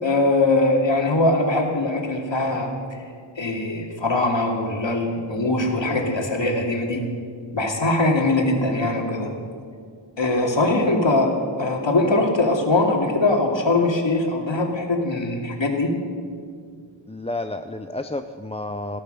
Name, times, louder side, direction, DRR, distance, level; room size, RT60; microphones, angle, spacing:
voice 1, 0.0-3.0 3.4-7.1 7.5-9.3 10.2-15.9, left 2 dB, 65° left, 1 dB, 2.5 m, -21 dB
voice 2, 17.1-19.0, left 2 dB, 15° left, 8 dB, 0.5 m, -30 dB
16.0 x 13.0 x 6.7 m, 2.1 s
wide cardioid pair, 60°, 48 cm